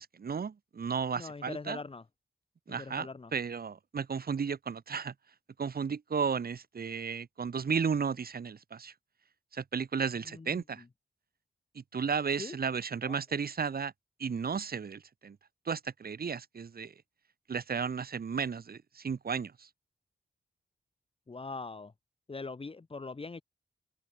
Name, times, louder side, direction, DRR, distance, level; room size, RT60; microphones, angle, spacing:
voice 1, 0.0-1.8 2.7-5.1 5.6-8.9 9.5-10.8 11.7-13.9 14.2-15.4 15.6-16.9 17.5-19.7, right 6 dB, 65° right, 6.6 m, -34 dB
voice 2, 1.2-2.0 2.7-3.3 10.3-10.9 12.4-12.6 13.0-13.1 21.3-21.9 22.3-23.4, left 3 dB, 35° left, 2.6 m, -42 dB
wide cardioid pair, 135°, 17 cm